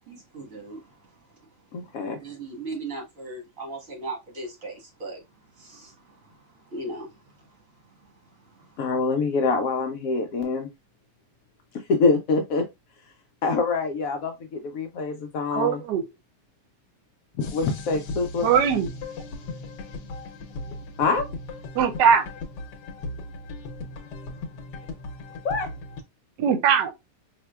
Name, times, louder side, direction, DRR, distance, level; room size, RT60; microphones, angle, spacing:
voice 1, 0.0-1.9 2.2-8.9, right 2 dB, 50° right, 1.8 m, -39 dB
voice 2, 1.7-2.2 8.8-10.7 11.9-12.7 13.4-15.8 17.4-18.5 21.0-21.2 25.4-25.7, left 4 dB, 70° left, 0.9 m, -25 dB
voice 3, 15.5-16.0 18.4-18.9 21.7-22.3 26.4-26.9, right 7 dB, 80° right, 1.2 m, -20 dB
sound 1, 17.4-26.0, left 2 dB, 90° left, 1.3 m, -37 dB
4.3 x 2.8 x 2.2 m
omnidirectional pair, 1.8 m